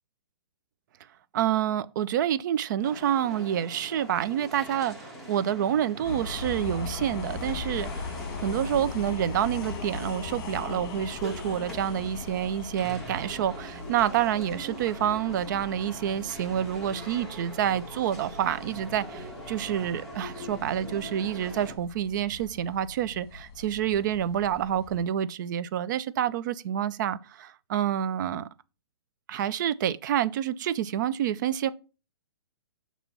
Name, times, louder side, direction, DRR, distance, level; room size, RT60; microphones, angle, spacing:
voice 1, 1.3-8.1 8.4-28.5 29.3-31.7, right 10 dB, 45° right, 0.5 m, -28 dB
sound 1, 2.8-21.8, right 1 dB, ahead, 1.6 m, -43 dB
sound 2, 6.0-25.0, left 4 dB, 40° left, 1.4 m, -40 dB
6.7 x 3.0 x 5.9 m
hypercardioid pair, 145°, 14 cm